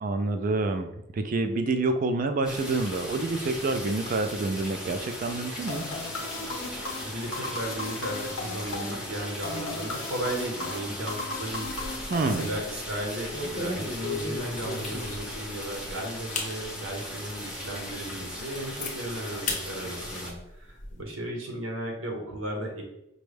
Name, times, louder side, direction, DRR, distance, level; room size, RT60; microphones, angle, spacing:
voice 1, 0.0-5.8 12.1-12.5, right 3 dB, 40° right, 7 dB, 0.3 m, -28 dB
sound 1, 2.4-20.3, left 1 dB, 5° right, 0.7 m, -38 dB
sound 2, 5.7-13.1, left 3 dB, 85° left, 0.8 m, -37 dB
voice 2, 7.0-22.8, right 1 dB, 90° right, 1 dB, 0.9 m, -35 dB
sound 3, 11.7-12.2 12.5-12.8 13.3-15.4 15.8-15.9 16.3-16.5 17.1-17.2 17.7-17.8 18.1-18.9 19.5-19.6 20.0-20.9, left 3 dB, 40° left, 0.6 m, -34 dB
5.1 x 2.2 x 3.2 m, 0.87 s
head